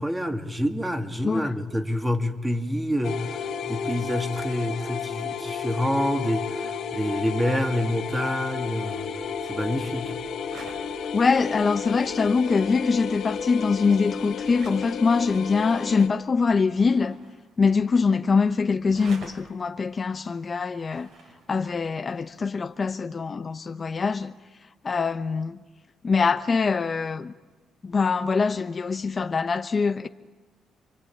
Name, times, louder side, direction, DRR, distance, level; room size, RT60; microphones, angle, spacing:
voice 1, 0.0-9.1 9.4-10.1, equal, 10° right, 2.4 m, -27 dB
sound 1, 3.0-16.1, left 6 dB, 70° left, 3.4 m, -32 dB
sound 2, 9.1-22.9, right 3 dB, 65° right, 7.0 m, -52 dB
voice 2, 11.1-17.2 17.6-21.1 21.5-24.3 24.8-25.6 26.0-27.3 27.8-30.1, left 5 dB, 35° left, 0.8 m, -23 dB
27.5 x 24.0 x 8.7 m
cardioid pair, 90°, 0 cm